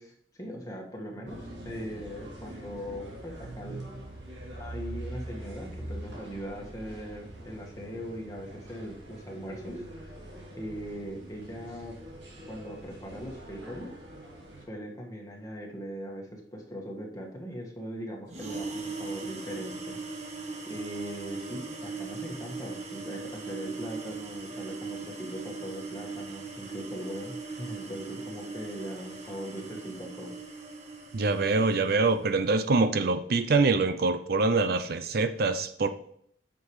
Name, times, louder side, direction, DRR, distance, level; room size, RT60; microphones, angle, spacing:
voice 1, 0.0-3.8 4.6-10.1 10.5-11.9 12.5-13.9 14.6-20.0 20.6-30.3, equal, 20° left, 0 dB, 1.6 m, -40 dB
sound 1, 1.3-14.6, right 1 dB, 80° right, 2.6 m, -43 dB
sound 2, 18.3-32.2, right 4 dB, 40° right, 1.3 m, -40 dB
voice 2, 31.1-35.9, right 3 dB, 55° right, 11 dB, 0.5 m, -25 dB
9.2 x 6.7 x 3.2 m, 0.66 s
head